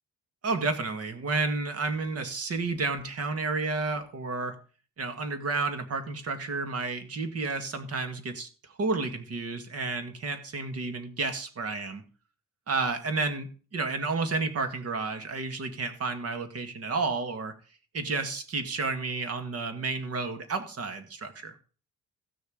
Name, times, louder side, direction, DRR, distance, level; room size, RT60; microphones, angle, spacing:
voice 1, 0.4-4.5 5.0-8.5 8.8-12.0 12.7-17.5 17.9-21.5, right 3 dB, 50° right, 8 dB, 2.0 m, -31 dB
15.0 x 6.5 x 5.0 m, 0.37 s
cardioid pair, 90°, 30 cm